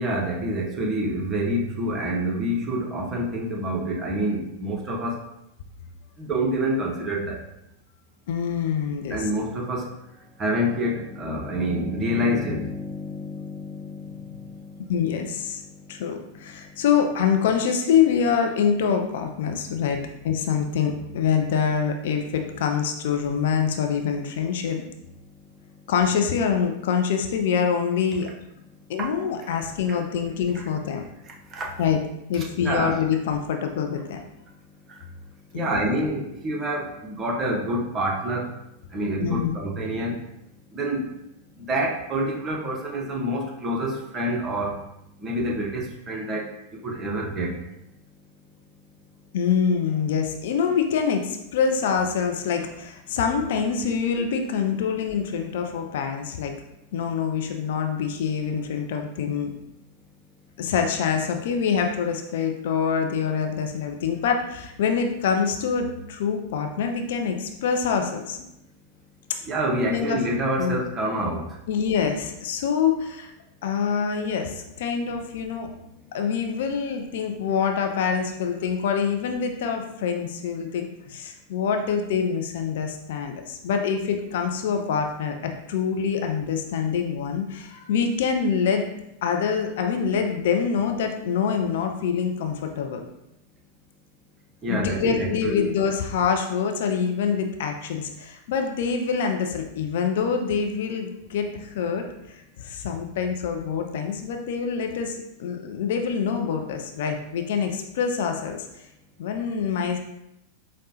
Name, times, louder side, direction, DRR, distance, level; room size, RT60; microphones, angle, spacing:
voice 1, 0.0-5.2 6.2-7.4 9.1-9.9 10.4-16.8 19.5-19.8 25.8-25.9 29.0-29.1 29.9-30.0 30.5-30.6 31.2-31.8 32.3-33.0 34.9-35.0 35.5-38.5 38.9-40.2 40.7-41.1 41.5-44.8 45.2-47.6 69.4-71.6 94.6-95.7, right 1 dB, 25° right, -1 dB, 0.7 m, -28 dB
voice 2, 8.3-9.2 14.9-15.6 15.9-20.0 20.2-24.8 25.9-28.3 28.9-31.0 31.8-32.0 32.3-34.2 35.5-35.8 39.2-39.5 49.3-56.5 56.9-59.5 60.6-68.4 69.9-70.2 70.6-70.8 71.7-73.3 73.6-75.7 76.1-88.8 89.2-93.1 94.7-102.0 102.6-108.8 109.2-110.0, left 6 dB, 55° left, 4 dB, 0.4 m, -25 dB
4.8 x 2.1 x 2.8 m, 0.85 s
figure-of-eight pair, 90°, 0 cm